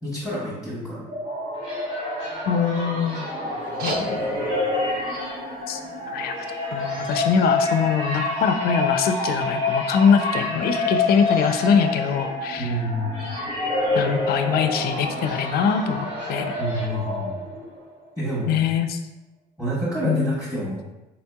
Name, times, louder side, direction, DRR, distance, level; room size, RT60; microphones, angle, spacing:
voice 1, 0.0-1.0 12.6-13.2 16.6-17.4 18.2-18.6 19.6-20.8, right 1 dB, 5° right, -8 dB, 1.1 m, -28 dB
sound 1, 0.8-17.8, left 2 dB, 85° right, 1.3 m, -27 dB
voice 2, 2.5-3.3 3.8-4.3 5.7-5.8 6.1-6.3 6.7-12.8 13.9-16.5 18.5-19.0 20.0-20.3, left 7 dB, 65° left, 7 dB, 0.4 m, -23 dB
sound 2, 3.6-8.6, right 3 dB, 65° right, 0.6 m, -40 dB
4.0 x 2.7 x 2.2 m, 0.96 s
cardioid pair, 110°, 17 cm